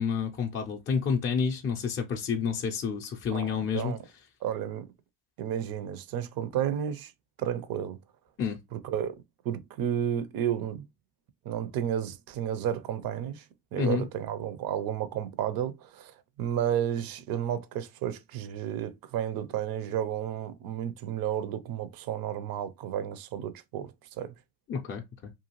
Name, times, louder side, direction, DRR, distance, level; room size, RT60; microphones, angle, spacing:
voice 1, 0.0-3.9 8.4-8.6 13.8-14.0 24.7-25.3, left 6 dB, 30° left, 0.4 m, -29 dB
voice 2, 3.3-4.0 4.4-4.9 5.4-7.1 7.4-8.0 8.7-9.2 9.4-10.9 11.4-13.4 13.7-24.3, right 9 dB, 50° right, 0.5 m, -32 dB
2.6 x 2.3 x 2.9 m
supercardioid pair, 80°, 47 cm